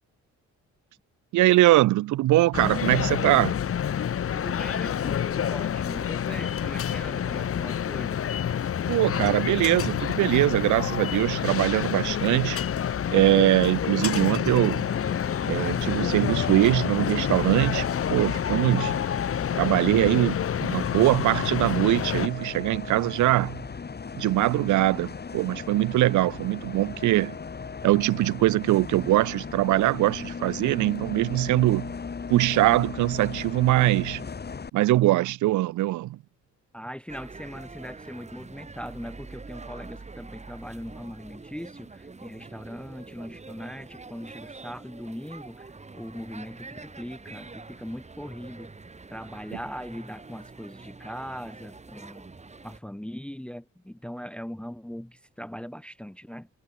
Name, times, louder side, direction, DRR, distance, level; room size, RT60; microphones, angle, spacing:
voice 1, 1.3-3.6 8.9-12.6 13.1-14.9 15.5-19.0 19.5-23.6 24.2-27.3 27.8-31.9 32.3-34.2 34.7-36.2, right 16 dB, 75° right, 0.7 m, -22 dB
sound 1, 2.5-22.3, left 9 dB, 50° left, 1.2 m, -28 dB
voice 2, 4.3-8.2 36.7-45.7 45.9-48.7 49.1-52.3 52.6-56.5, equal, 5° left, 1.1 m, -40 dB
Bus, 14.9-34.7, left 5 dB, 35° left, 3.0 m, -37 dB
sound 2, 37.1-52.8, right 3 dB, 20° right, 2.9 m, -45 dB
cardioid pair, 90°, 30 cm